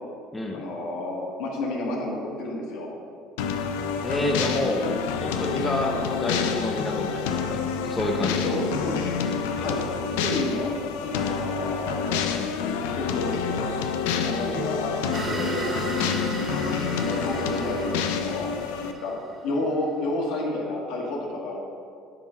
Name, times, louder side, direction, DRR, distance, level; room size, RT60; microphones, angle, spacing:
voice 1, 0.5-2.9 5.8-6.1 8.4-9.1 9.6-9.8 10.2-10.7 11.0-12.2 13.0-13.7 14.1-14.9 15.2-15.6 16.8-18.5 18.8-19.1 19.4-21.6, left 2 dB, 75° left, -1 dB, 1.6 m, -30 dB
sound 1, 3.4-18.9, left 6 dB, 90° left, 0.5 m, -28 dB
voice 2, 4.0-4.9 5.2-5.9 6.2-8.4, left 1 dB, 15° left, 1 dB, 0.8 m, -28 dB
sound 2, 15.1-19.7, right 2 dB, 25° right, 1.3 m, -34 dB
8.9 x 3.8 x 5.6 m, 2.3 s
supercardioid pair, 95°, 0 cm